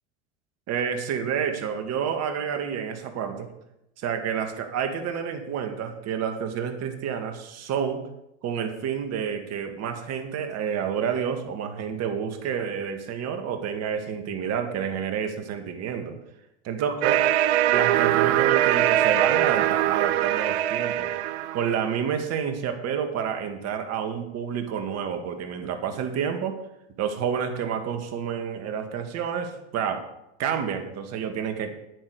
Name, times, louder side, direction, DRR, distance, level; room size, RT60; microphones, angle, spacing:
voice 1, 0.7-3.5 4.0-8.0 8.4-16.2 16.6-17.2 17.7-21.1 21.5-26.5 27.0-30.0 30.4-31.7, right 7 dB, 45° right, 6 dB, 2.0 m, -29 dB
sound 1, 17.0-21.8, right 13 dB, 70° right, 0.8 m, -22 dB
9.9 x 9.9 x 4.9 m, 0.85 s
hypercardioid pair, 90°, 35 cm